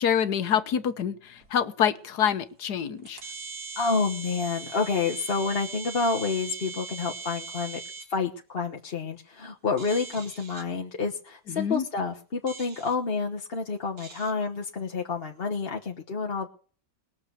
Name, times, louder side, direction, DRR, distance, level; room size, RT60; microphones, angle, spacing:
voice 1, 0.0-3.2 11.5-11.8, left 8 dB, 90° left, 12 dB, 1.6 m, -26 dB
sound 1, 1.4-1.5 2.4-2.5 3.0-8.0 9.8-10.6 12.5-12.9 14.0-14.3, right 5 dB, 75° right, 2.7 m, -40 dB
voice 2, 3.8-7.8 8.1-16.5, left 4 dB, 40° left, 1 dB, 1.3 m, -29 dB
21.0 x 7.1 x 6.8 m, 0.42 s
omnidirectional pair, 1.7 m